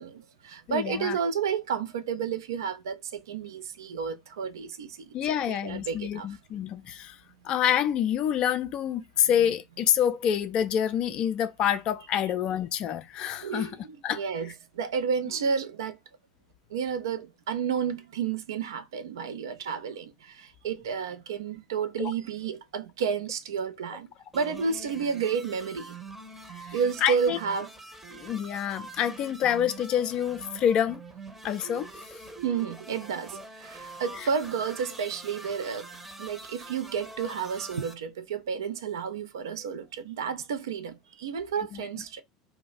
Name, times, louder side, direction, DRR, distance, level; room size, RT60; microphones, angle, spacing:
voice 1, 0.0-5.1 5.5-6.3 13.4-16.0 16.7-24.1 24.3-25.9 26.7-27.7 32.4-35.9 36.2-42.2, right 6 dB, 65° right, 0.4 m, -31 dB
voice 2, 0.7-1.2 5.1-7.2 7.4-13.7 14.0-14.2 22.0-22.1 27.0-27.4 28.1-31.0 31.4-31.9 41.7-41.8, left 9 dB, 40° left, 0.3 m, -27 dB
sound 1, 24.3-37.9, right 3 dB, 10° right, 0.7 m, -45 dB
2.3 x 2.1 x 3.9 m
figure-of-eight pair, 75°, 2 cm